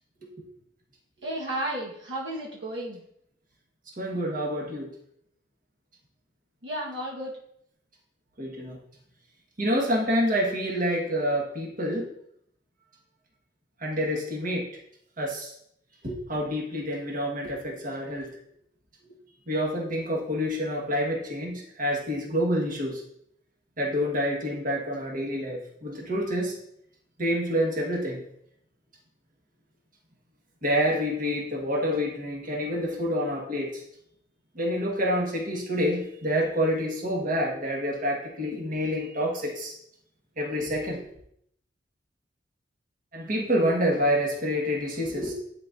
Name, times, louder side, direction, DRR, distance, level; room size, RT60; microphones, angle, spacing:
voice 1, 1.2-3.0 6.6-7.3, right 1 dB, 70° right, -4 dB, 1.3 m, -33 dB
voice 2, 4.0-4.9 8.4-8.8 9.6-12.1 13.8-14.7 15.2-15.5 16.0-18.3 19.5-23.0 23.8-26.5 27.2-28.2 30.6-33.8 34.5-39.7 40.4-41.1 43.1-45.3, equal, 45° right, -2 dB, 1.5 m, -27 dB
11.0 x 4.0 x 2.6 m, 0.70 s
head